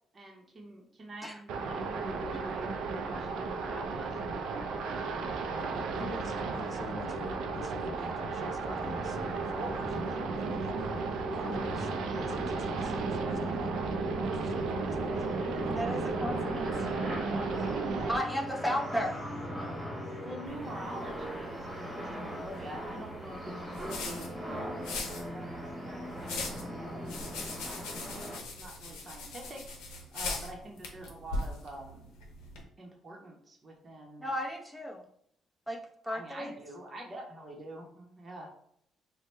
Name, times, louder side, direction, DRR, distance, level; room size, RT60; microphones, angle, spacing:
voice 1, 0.1-5.9 15.0-15.8 17.3-18.4 20.2-32.1 32.8-34.3 36.0-38.5, right 1 dB, 40° right, -1 dB, 0.8 m, -46 dB
sound 1, 1.5-18.2, right 4 dB, 80° right, 0.4 m, -34 dB
voice 2, 5.6-11.0 11.3-11.9 12.3-13.8 14.2-15.2, left 3 dB, 40° left, 7 dB, 0.5 m, -45 dB
sound 2, 8.8-28.4, right 1 dB, 25° right, 1.1 m, -40 dB
voice 3, 15.6-16.6 18.1-19.1 34.2-35.0 35.7-36.6, equal, ahead, -1 dB, 0.7 m, -34 dB
sound 3, 20.5-32.6, left 2 dB, 90° left, 0.6 m, -41 dB
2.9 x 2.1 x 3.2 m, 0.68 s
supercardioid pair, 70°, 0 cm